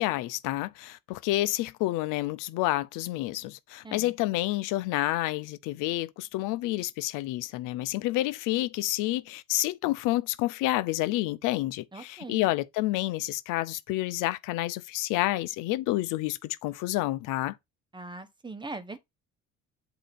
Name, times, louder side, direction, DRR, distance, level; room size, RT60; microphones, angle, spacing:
voice 1, 0.0-17.6, left 17 dB, 85° left, 0.7 m, -29 dB
voice 2, 11.9-12.4 17.9-19.0, right 2 dB, 15° right, 1.1 m, -41 dB
8.0 x 2.9 x 4.3 m
cardioid pair, 95°, 31 cm